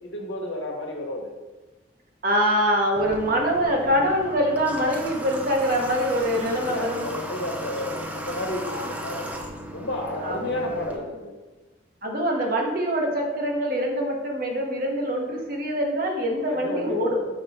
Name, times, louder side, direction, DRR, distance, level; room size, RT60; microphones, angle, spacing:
voice 1, 0.0-1.3 6.3-9.3 9.7-11.4 16.5-17.2, left 1 dB, 75° left, 0 dB, 1.2 m, -31 dB
voice 2, 2.2-7.0 8.6-9.0 10.2-10.5 12.0-17.3, equal, 45° right, 1 dB, 0.9 m, -24 dB
Water / Water tap faucet, 3.0-11.0, right 1 dB, 5° right, 0.4 m, -36 dB
5.2 x 4.6 x 4.0 m, 1.2 s
head